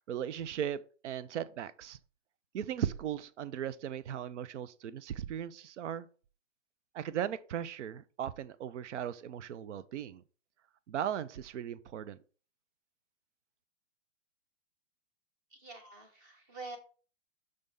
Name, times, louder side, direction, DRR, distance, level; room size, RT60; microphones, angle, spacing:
voice 1, 0.1-2.0 2.5-6.1 6.9-10.2 10.9-12.2, right 9 dB, 65° right, 0.6 m, -37 dB
voice 2, 15.5-16.8, right 3 dB, 15° right, 0.8 m, -46 dB
6.5 x 3.5 x 5.4 m
hypercardioid pair, 180°, 38 cm